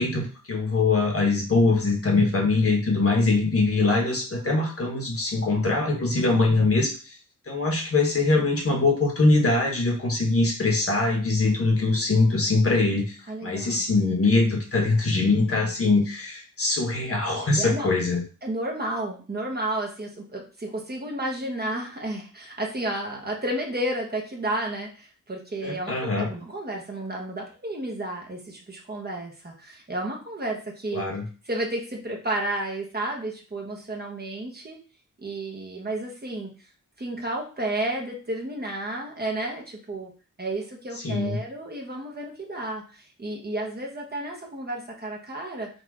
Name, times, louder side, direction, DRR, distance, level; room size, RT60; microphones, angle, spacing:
voice 1, 0.0-6.9 7.5-13.2 13.4-18.2 25.6-26.3 30.9-31.2 41.0-41.4, left 3 dB, 45° left, 0 dB, 1.4 m, -22 dB
voice 2, 13.3-13.8 15.6-15.7 17.6-17.9 18.4-31.1 31.4-34.8 35.2-36.5 37.0-40.1 40.4-45.7, right 1 dB, 30° right, -1 dB, 1.1 m, -32 dB
4.0 x 2.7 x 4.8 m, 0.36 s
wide cardioid pair, 120°, 32 cm